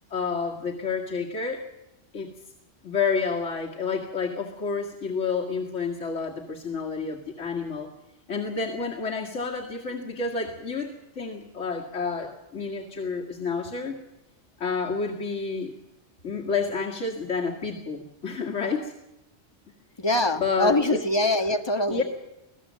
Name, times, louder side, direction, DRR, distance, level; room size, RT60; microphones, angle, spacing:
voice 1, 0.1-1.6 2.1-2.3 2.8-7.9 8.3-14.0 14.6-15.7 16.2-18.9 20.4-21.0 21.9-22.0, left 5 dB, 85° left, -2 dB, 2.3 m, -29 dB
voice 2, 20.0-22.0, left 1 dB, 20° left, 5 dB, 1.6 m, -23 dB
26.0 x 17.0 x 7.5 m, 0.93 s
omnidirectional pair, 1.2 m